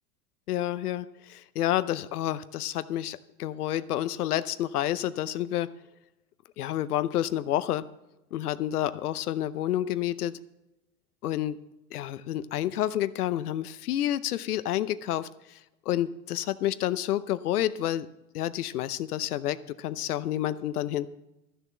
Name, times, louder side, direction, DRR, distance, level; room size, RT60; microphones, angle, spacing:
voice 1, 0.5-5.7 6.6-7.8 8.3-10.3 11.2-11.6 11.9-15.3 15.9-18.1 18.3-21.1, left 12 dB, 80° left, 15 dB, 0.7 m, -29 dB
13.5 x 6.7 x 7.5 m, 0.93 s
hypercardioid pair, 85°, 45 cm